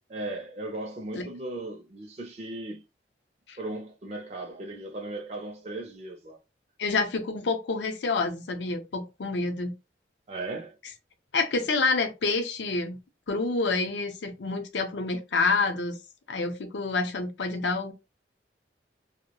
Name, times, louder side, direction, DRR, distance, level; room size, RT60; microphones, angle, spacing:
voice 1, 0.1-2.8 3.6-6.4 10.3-10.8, right 2 dB, 35° right, 0.4 m, -37 dB
voice 2, 6.8-9.7 11.3-13.0 13.3-16.0 16.3-17.9, left 3 dB, 80° left, 0.5 m, -28 dB
2.2 x 2.0 x 2.8 m
head